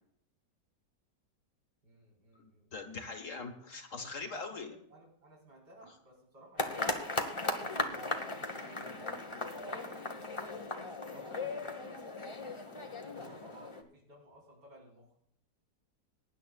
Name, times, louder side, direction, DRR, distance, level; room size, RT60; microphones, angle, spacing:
voice 1, 1.8-2.7 3.2-3.4 4.3-6.9 7.5-10.0 10.2-10.7 11.1-11.8 13.1-15.1, equal, 90° right, -2 dB, 4.7 m, -56 dB
voice 2, 2.4-4.8, left 4 dB, 50° left, 5 dB, 1.7 m, -42 dB
sound 1, 6.6-13.8, left 2 dB, 20° left, 1.0 m, -37 dB
22.5 x 10.5 x 2.3 m, 0.66 s
omnidirectional pair, 1.8 m